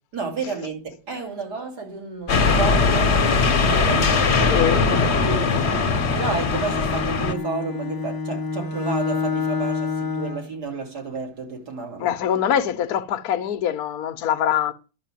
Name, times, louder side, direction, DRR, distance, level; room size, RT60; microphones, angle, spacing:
voice 1, 0.1-3.2 3.7-4.8 5.1-5.6 6.1-12.1, right 4 dB, 55° right, 3.3 m, -31 dB
sound 1, 2.3-7.3, left 4 dB, 40° left, 1.2 m, -20 dB
voice 2, 4.5-5.1 12.0-14.7, left 9 dB, 60° left, 1.2 m, -23 dB
Bowed string instrument, 5.8-10.5, left 5 dB, 20° left, 0.6 m, -28 dB
11.0 x 6.3 x 7.4 m
omnidirectional pair, 2.1 m